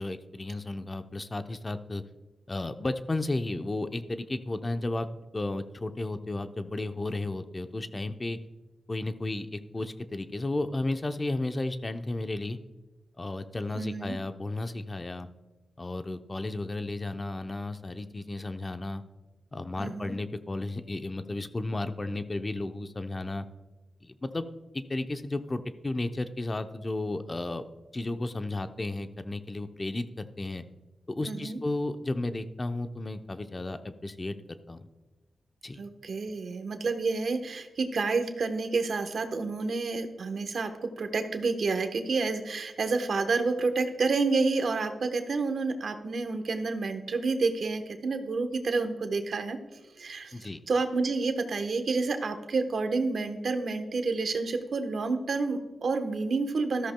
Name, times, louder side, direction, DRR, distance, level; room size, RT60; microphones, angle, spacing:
voice 1, 0.0-2.0 2.5-5.1 5.3-8.4 8.9-12.6 13.2-15.3 15.8-19.0 19.5-23.5 24.0-24.5 24.7-27.6 27.9-30.6 31.1-34.4 34.7-34.9 35.6-35.8 50.3-50.6, left 2 dB, 30° left, 8 dB, 0.7 m, -33 dB
voice 2, 13.7-14.1 19.8-20.1 31.2-31.6 35.8-49.6 50.0-50.3 50.7-56.9, right 3 dB, 70° right, 7 dB, 1.1 m, -29 dB
13.5 x 13.0 x 2.2 m, 1.1 s
cardioid pair, 65°, 0 cm